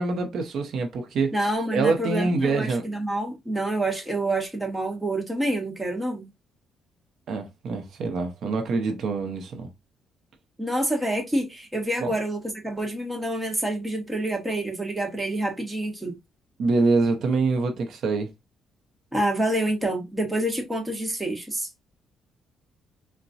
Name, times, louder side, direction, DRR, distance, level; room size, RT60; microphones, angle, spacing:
voice 1, 0.0-1.3 1.7-2.8 7.3-9.7 12.0-12.1 16.6-18.3, right 3 dB, 65° right, 0.7 m, -25 dB
voice 2, 1.3-6.3 10.6-16.2 19.1-21.7, right 1 dB, 10° right, 1.1 m, -27 dB
3.9 x 2.2 x 2.6 m
cardioid pair, 115°, 0 cm